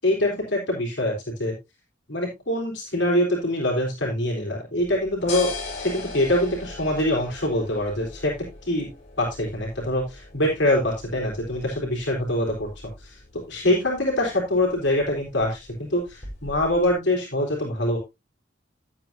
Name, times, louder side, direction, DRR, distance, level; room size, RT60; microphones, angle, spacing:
voice 1, 0.0-1.1 1.4-1.5 2.1-8.3 8.6-8.9 9.2-12.7 13.0-13.2 13.5-18.0, left 1 dB, 65° left, -2 dB, 4.0 m, -24 dB
sound 1, 4.8-16.9, left 3 dB, 40° left, 4.9 m, -40 dB
11.5 x 8.7 x 2.8 m, 0.22 s
head